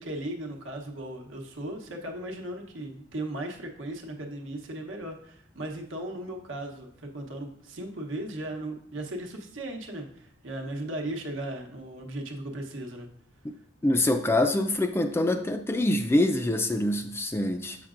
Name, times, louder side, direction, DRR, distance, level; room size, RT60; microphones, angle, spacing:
voice 1, 0.0-13.1, right 1 dB, 75° right, 2 dB, 0.9 m, -37 dB
voice 2, 13.8-17.8, left 1 dB, 10° left, 6 dB, 0.3 m, -25 dB
7.1 x 5.7 x 2.5 m, 0.64 s
head